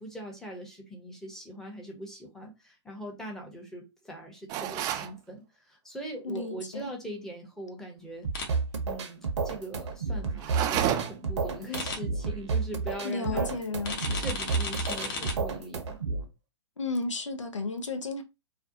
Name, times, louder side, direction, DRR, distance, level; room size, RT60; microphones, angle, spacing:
voice 1, 0.0-8.3 8.8-13.5 14.1-16.0, equal, 5° left, 0.7 m, -41 dB
sound 1, 4.5-5.1 10.4-11.3, right 11 dB, 25° right, 0.3 m, -30 dB
voice 2, 6.2-6.9 13.0-14.2 16.8-18.2, left 3 dB, 90° left, 0.5 m, -33 dB
sound 2, 8.2-16.2, right 4 dB, 70° right, 0.7 m, -31 dB
sound 3, 8.3-8.5 11.7-12.0 13.8-15.3, left 4 dB, 45° left, 0.8 m, -34 dB
2.4 x 2.1 x 2.6 m
figure-of-eight pair, 120°, 15 cm